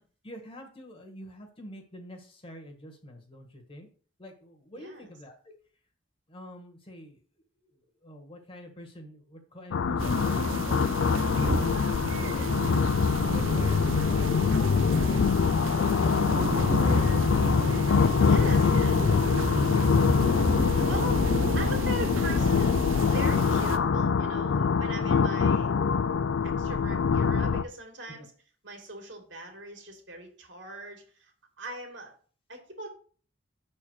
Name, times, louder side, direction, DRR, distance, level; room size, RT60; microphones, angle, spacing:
voice 1, 0.2-3.9 4.2-5.3 6.3-7.2 8.0-12.5 13.0-15.2 15.7-17.2 18.0-18.7 19.1-20.9 25.0-25.2 28.1-28.2, left 1 dB, 30° left, 4 dB, 1.5 m, -45 dB
voice 2, 4.8-5.1 18.2-18.8 20.8-25.7 26.4-28.3 28.6-31.3 31.6-32.1 32.5-32.9, right 1 dB, 65° right, 2 dB, 2.4 m, -40 dB
sound 1, 9.7-27.6, left 5 dB, 75° left, 0.4 m, -24 dB
sound 2, 10.0-23.8, right 3 dB, 90° right, 0.7 m, -33 dB
7.2 x 4.5 x 6.4 m, 0.42 s
head